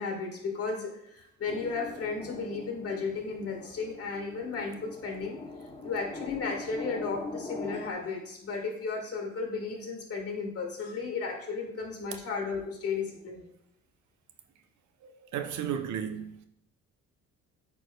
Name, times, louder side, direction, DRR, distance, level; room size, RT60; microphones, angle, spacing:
voice 1, 0.0-5.4 5.8-13.5, left 4 dB, 50° left, 1.8 m, -34 dB
sound 1, 1.5-7.9, left 3 dB, 20° left, 0.8 m, -42 dB
voice 2, 15.0-16.4, right 8 dB, 70° right, 0.7 m, -34 dB
8.8 x 4.7 x 2.3 m
cardioid pair, 90°, 30 cm